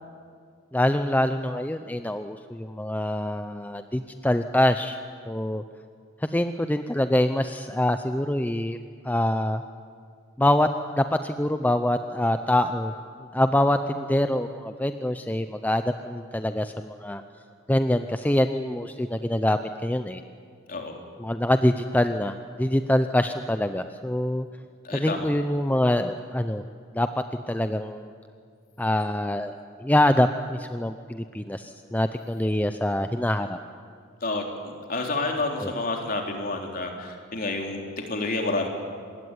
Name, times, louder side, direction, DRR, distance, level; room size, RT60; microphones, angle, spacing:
voice 1, 0.7-5.0 5.3-5.6 6.3-8.8 9.0-9.6 10.4-10.7 10.9-12.9 13.3-17.2 17.7-20.2 21.2-24.5 24.9-26.6 26.9-27.1 27.5-28.1 28.8-29.5 29.8-33.6 35.6-35.7, left 1 dB, 10° left, 8 dB, 0.6 m, -25 dB
voice 2, 24.8-25.3 34.2-38.7, left 2 dB, 45° left, 2 dB, 3.5 m, -29 dB
26.0 x 20.5 x 9.8 m, 2.1 s
head